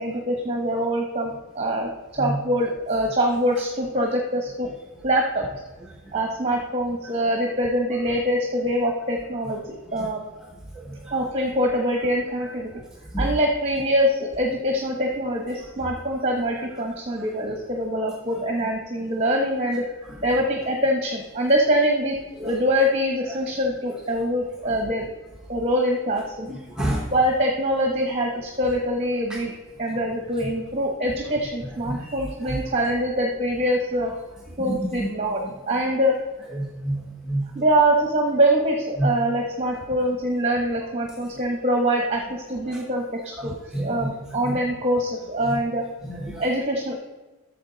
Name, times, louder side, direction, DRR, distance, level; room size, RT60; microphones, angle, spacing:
voice 1, 0.0-4.7 5.0-5.5 6.1-10.2 11.1-12.7 13.2-19.9 20.2-25.1 25.5-26.5 27.1-29.5 29.8-34.1 34.6-35.4 35.7-36.2 37.5-45.8 46.4-46.9, equal, 30° right, 1 dB, 1.0 m, -24 dB
voice 2, 26.5-27.0 35.0-35.1 36.6-37.0 37.3-37.4 39.0-39.1 43.4-43.9 44.5-44.6 46.0-46.4, right 1 dB, 5° right, -2 dB, 0.9 m, -27 dB
12.5 x 7.0 x 3.9 m, 1.2 s
head